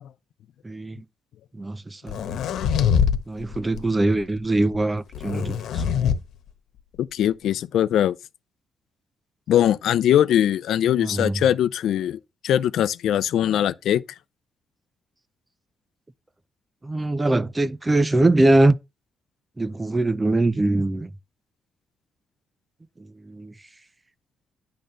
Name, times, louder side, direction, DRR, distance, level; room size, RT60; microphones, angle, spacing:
voice 1, 0.6-1.0 1.5-2.2 3.3-5.8 11.0-11.4 16.8-18.8 19.6-21.1 23.2-23.5, right 2 dB, 15° right, 0.5 m, -22 dB
sound 1, 2.1-3.2 3.5-3.9 5.1-6.2, left 7 dB, 90° left, 1.2 m, -23 dB
voice 2, 7.0-8.2 9.5-14.0, left 10 dB, 75° left, 0.6 m, -21 dB
10.5 x 3.8 x 6.7 m
cardioid pair, 170°, 0 cm